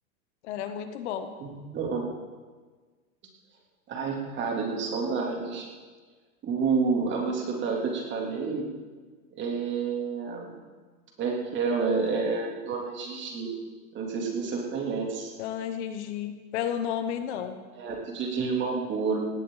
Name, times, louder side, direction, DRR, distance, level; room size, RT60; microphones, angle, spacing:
voice 1, 0.4-1.3 15.4-17.6, left 9 dB, 50° left, 9 dB, 1.2 m, -32 dB
voice 2, 1.4-2.1 3.9-5.7 6.4-8.7 9.3-10.6 11.2-13.5 13.9-15.3 17.7-19.2, right 4 dB, 25° right, -1 dB, 3.3 m, -29 dB
18.0 x 17.0 x 4.1 m, 1.4 s
supercardioid pair, 150°, 43 cm